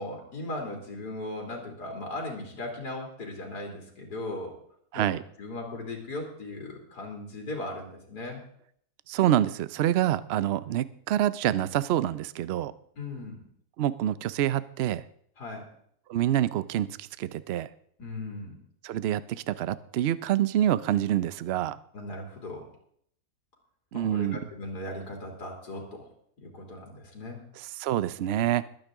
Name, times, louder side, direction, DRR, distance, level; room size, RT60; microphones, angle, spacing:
voice 1, 0.0-4.5 4.9-8.4 13.0-13.4 15.4-15.6 18.0-18.5 21.9-22.7 23.9-26.1 26.4-27.4, left 2 dB, 85° left, 1 dB, 3.2 m, -38 dB
voice 2, 4.9-5.2 9.1-12.7 13.8-15.0 16.1-17.7 18.8-21.8 23.9-24.4 27.6-28.7, right 12 dB, 65° right, 16 dB, 0.6 m, -27 dB
21.5 x 9.0 x 3.6 m, 0.65 s
omnidirectional pair, 1.7 m